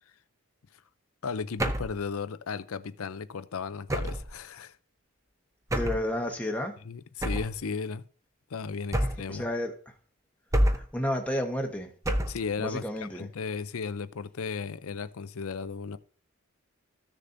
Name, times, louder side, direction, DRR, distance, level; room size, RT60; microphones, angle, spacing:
voice 1, 1.2-4.7 6.9-8.0 8.5-9.5 12.3-12.8 13.1-16.0, left 5 dB, 75° left, 0.5 m, -35 dB
sound 1, 1.6-2.0 3.9-4.3 5.7-6.1 7.2-7.6 8.9-9.4 10.5-11.0 12.0-12.5, equal, 15° right, 0.6 m, -27 dB
voice 2, 5.7-6.7 8.9-9.9 10.7-11.9 12.6-13.3, left 1 dB, 5° left, 1.1 m, -32 dB
14.5 x 6.7 x 2.6 m
head